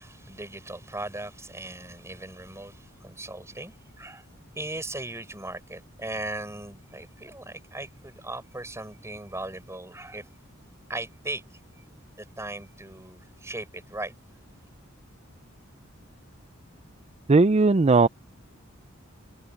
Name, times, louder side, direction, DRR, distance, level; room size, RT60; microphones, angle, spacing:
voice 1, 0.0-4.3 4.5-10.3 10.9-11.6 12.2-14.1, right 2 dB, 15° right, 5.7 m, -38 dB
voice 2, 17.3-18.1, right 3 dB, 30° right, 0.5 m, -17 dB
head